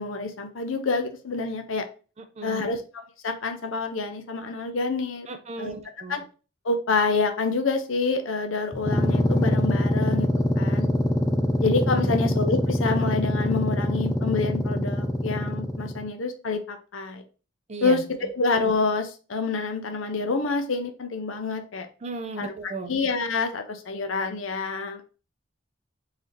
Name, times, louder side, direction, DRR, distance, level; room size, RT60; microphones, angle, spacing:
voice 1, 0.0-1.9 2.4-2.8 3.2-5.3 5.6-5.7 6.1-6.2 6.6-10.3 10.6-10.9 11.6-17.2 17.8-18.0 18.3-21.9 22.4-25.1, left 4 dB, 70° left, 7 dB, 0.6 m, -27 dB
voice 2, 2.4-2.8 5.3-6.2 12.0-12.2 17.7-18.0 22.0-23.0, right 2 dB, 30° right, 6 dB, 0.5 m, -36 dB
sound 1, 8.7-16.1, left 1 dB, 15° left, 0.3 m, -24 dB
3.9 x 2.7 x 3.1 m, 0.35 s
head